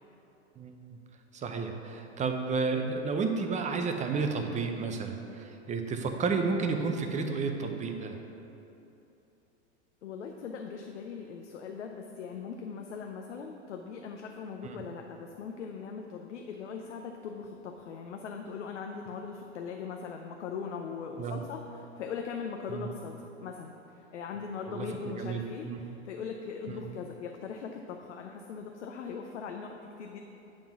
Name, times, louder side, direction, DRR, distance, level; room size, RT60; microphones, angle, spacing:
voice 1, 1.3-8.2 14.6-14.8 21.2-21.4 22.7-22.9 24.7-24.9 25.2-25.8 26.7-26.8, right 4 dB, 20° right, 4 dB, 0.7 m, -31 dB
voice 2, 10.0-30.2, left 6 dB, 80° left, 3 dB, 0.6 m, -40 dB
8.7 x 3.7 x 5.9 m, 2.9 s
hypercardioid pair, 95°, 35 cm